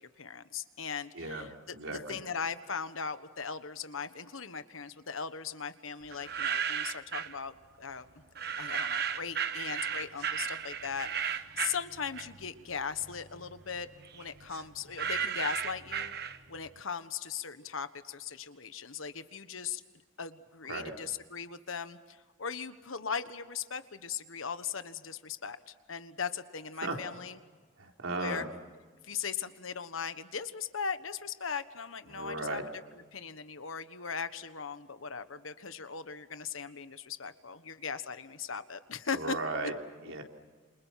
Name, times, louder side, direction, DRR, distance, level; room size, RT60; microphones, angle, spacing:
voice 1, 0.2-1.5 1.9-8.1 8.6-13.9 14.1-16.1 16.5-19.8 20.2-27.4 28.1-28.4 29.0-39.4, left 6 dB, 85° left, 11 dB, 1.4 m, -39 dB
voice 2, 1.1-1.5 1.7-2.2 20.7-20.9 26.8-27.0 27.8-28.5 32.1-32.6 39.1-39.7 40.0-40.2, right 2 dB, 80° right, 2 dB, 3.8 m, -36 dB
sound 1, 6.1-7.4 8.4-12.6 13.0-16.7, right 7 dB, 50° right, 1.1 m, -35 dB
28.0 x 27.5 x 5.9 m, 1.4 s
head